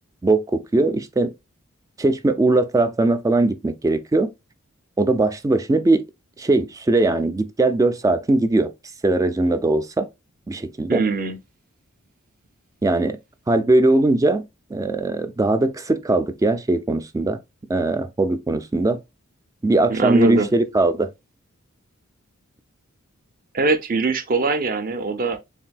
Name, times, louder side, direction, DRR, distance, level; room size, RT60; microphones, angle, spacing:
voice 1, 0.2-1.3 2.0-4.3 5.0-6.0 6.4-8.7 9.0-10.1 10.5-11.0 12.8-13.2 13.5-14.4 14.7-17.4 17.7-19.0 19.6-21.1, right 2 dB, 15° right, 0.3 m, -20 dB
voice 2, 10.9-11.4 19.9-20.5 23.5-25.4, right 3 dB, 45° right, 0.7 m, -22 dB
7.1 x 2.6 x 2.2 m
head